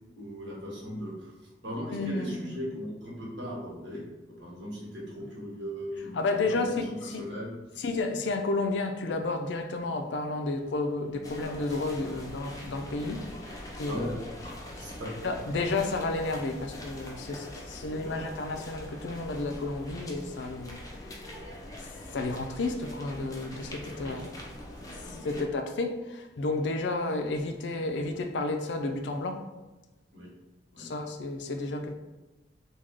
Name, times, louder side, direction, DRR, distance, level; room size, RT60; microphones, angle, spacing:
voice 1, 0.2-1.3 1.6-6.7 7.0-7.5 13.6-15.1 17.9-18.2 23.9-24.2 25.1-25.4 30.1-30.3 30.7-30.9, equal, 85° right, -4 dB, 1.2 m, -39 dB
voice 2, 1.9-2.6 6.1-7.2 7.8-14.1 14.8-14.9 15.2-21.4 22.1-24.4 25.2-29.4 30.8-31.9, left 2 dB, 80° left, 6 dB, 0.4 m, -32 dB
sound 1, 11.2-25.5, left 1 dB, 20° left, 0.4 m, -43 dB
3.4 x 2.3 x 3.6 m, 1.1 s
head